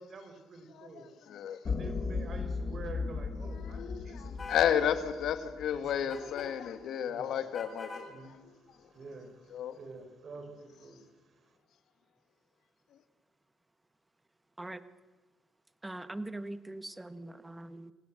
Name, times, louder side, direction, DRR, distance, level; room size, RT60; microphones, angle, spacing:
voice 1, 0.0-1.0 1.7-4.5 5.7-6.1 7.1-7.3 8.1-8.4 8.9-11.0, right 3 dB, 50° right, 5.4 m, -47 dB
voice 2, 0.7-1.6 3.5-8.6 9.5-9.8, left 9 dB, 75° left, 1.9 m, -33 dB
sound 1, 1.6-6.0, left 4 dB, 45° left, 2.8 m, -37 dB
sound 2, 4.4-4.8 6.1-6.5 7.5-8.1, left 3 dB, 30° left, 5.7 m, -43 dB
voice 3, 15.8-17.9, right 2 dB, 15° right, 1.5 m, -42 dB
28.0 x 17.5 x 7.9 m
cardioid pair, 90°, 0 cm